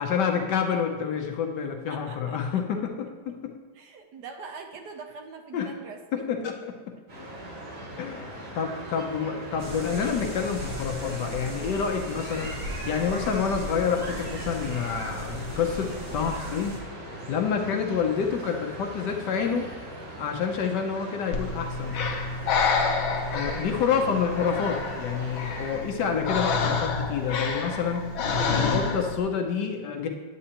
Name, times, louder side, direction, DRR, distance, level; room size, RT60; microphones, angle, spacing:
voice 1, 0.0-3.5 5.5-5.7 6.1-6.8 8.0-12.6 12.9-16.7 17.3-19.7 20.2-22.0 23.3-28.1 28.5-30.1, left 6 dB, 70° left, 4 dB, 1.3 m, -28 dB
voice 2, 1.9-2.6 3.7-6.3, right 4 dB, 65° right, 4 dB, 1.2 m, -43 dB
sound 1, 7.1-25.8, right 1 dB, 90° right, 3.5 m, -39 dB
sound 2, 9.6-16.8, right 1 dB, 20° right, 0.8 m, -38 dB
Breathing, 21.3-29.2, left 4 dB, 85° left, 1.7 m, -28 dB
9.9 x 8.5 x 2.9 m, 1.3 s
omnidirectional pair, 2.1 m